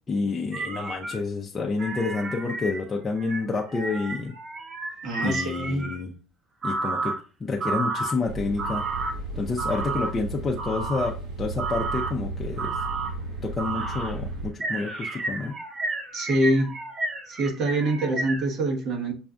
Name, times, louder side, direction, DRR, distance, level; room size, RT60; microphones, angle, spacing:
voice 1, 0.1-4.3 5.2-6.2 6.6-8.9 9.3-12.8 13.4-15.6, left 4 dB, 25° left, 0 dB, 0.5 m, -29 dB
sound 1, 0.5-1.2 1.8-6.0 6.6-7.2 7.6-8.1 8.6-9.1 9.6-10.1 10.6-11.1 11.6-12.1 12.6-13.1 13.6-14.1 14.6-18.5, right 3 dB, 35° right, 0.6 m, -31 dB
voice 2, 5.0-5.9 16.1-16.7 17.3-19.1, right 1 dB, 55° right, 2 dB, 1.1 m, -25 dB
sound 2, 8.2-14.5, right 2 dB, 75° right, 1.7 m, -35 dB
6.0 x 2.3 x 2.5 m, 0.36 s
cardioid pair, 130°, 0 cm